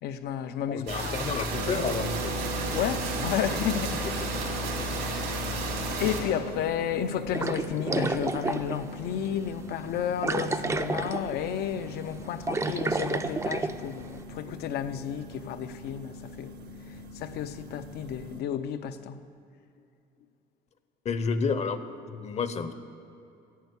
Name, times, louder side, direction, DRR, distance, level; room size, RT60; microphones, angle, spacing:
voice 1, 0.0-1.4 2.7-4.3 4.7-5.0 6.0-16.5 16.9-19.2, left 9 dB, 70° left, 0.6 m, -32 dB
voice 2, 0.7-2.4 2.7-2.8 4.4-4.6 21.0-22.7, left 5 dB, 40° left, 0.7 m, -31 dB
sound 1, 0.9-6.2, right 2 dB, 85° right, 2.9 m, -32 dB
sound 2, 1.5-18.4, equal, 70° right, 0.8 m, -41 dB
sound 3, 7.3-8.8 9.2-9.3 10.2-11.4 11.7-11.9 12.2-13.8, right 3 dB, 15° right, 0.5 m, -30 dB
11.0 x 8.1 x 8.2 m
cardioid pair, 110°, 17 cm